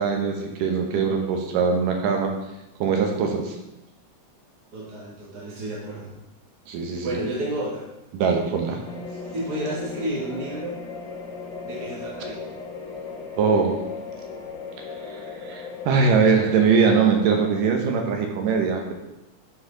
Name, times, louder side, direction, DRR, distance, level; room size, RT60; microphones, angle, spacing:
voice 1, 0.0-2.3 2.8-3.5 6.7-7.1 8.1-8.8 13.4-13.7 15.1-18.9, right 5 dB, 85° right, 2 dB, 2.6 m, -22 dB
voice 2, 4.7-6.2 7.0-7.8 9.3-10.8 11.6-12.4, right 1 dB, 40° right, -5 dB, 1.5 m, -31 dB
sound 1, 8.8-17.7, left 4 dB, 75° left, 1.1 m, -37 dB
9.2 x 4.6 x 3.8 m, 0.90 s
omnidirectional pair, 3.8 m